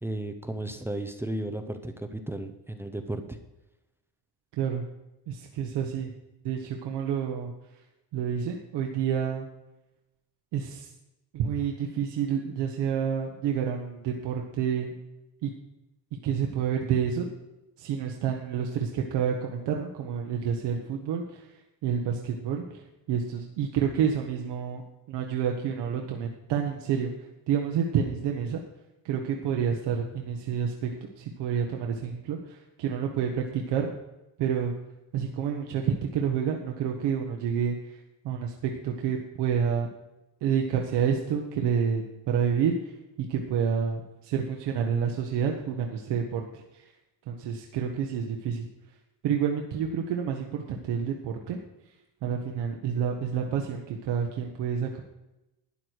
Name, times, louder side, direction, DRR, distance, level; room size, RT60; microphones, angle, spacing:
voice 1, 0.0-3.4, right 1 dB, 5° right, 7 dB, 0.7 m, -34 dB
voice 2, 5.3-6.1 6.4-7.5 8.1-9.5 10.5-10.9 11.3-14.9 15.4-15.5 16.2-17.3 17.8-21.2 21.8-22.6 23.1-24.8 25.1-27.1 27.5-28.6 29.0-30.9 31.2-33.9 34.4-34.7 35.1-37.7 38.2-39.9 40.4-42.8 43.3-46.6 47.3-48.6 49.2-51.6 52.2-55.0, right 7 dB, 80° right, 2 dB, 1.4 m, -28 dB
12.5 x 9.8 x 4.7 m, 0.98 s
cardioid pair, 150°, 41 cm